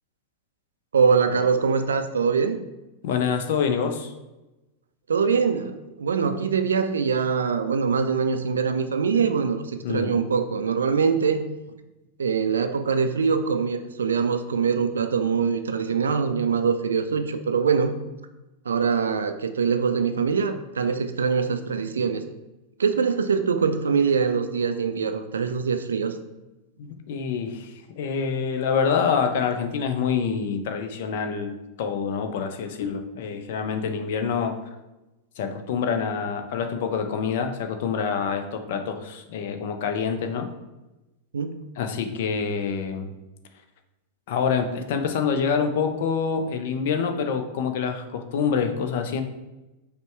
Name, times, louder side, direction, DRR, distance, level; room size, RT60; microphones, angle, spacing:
voice 1, 0.9-2.6 5.1-11.4 12.2-18.0 18.7-22.2 22.8-26.2 41.3-41.5, right 6 dB, 70° right, 8 dB, 0.3 m, -23 dB
voice 2, 3.0-4.1 9.8-10.1 26.8-34.6 35.4-40.5 41.8-43.1 44.3-49.2, left 6 dB, 55° left, 6 dB, 0.5 m, -26 dB
5.3 x 2.2 x 4.5 m, 1.0 s
figure-of-eight pair, 90°, 0 cm